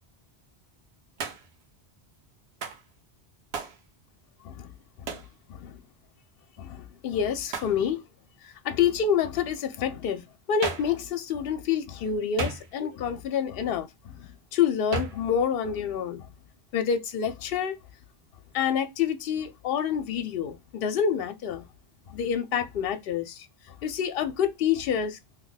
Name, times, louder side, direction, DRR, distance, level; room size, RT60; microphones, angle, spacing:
Hands, 1.2-1.6 2.6-2.9 3.5-3.8 5.1-5.3 7.5-7.8 10.6-11.0 12.4-13.0 14.9-15.3, right 4 dB, 85° right, 1.0 m, -34 dB
voice 1, 5.5-5.8 6.6-8.0 8.4-16.3 16.7-17.7 18.5-21.6 22.1-23.5 23.8-25.2, left 8 dB, 65° left, 0.7 m, -28 dB
2.8 x 2.1 x 3.9 m
omnidirectional pair, 1.1 m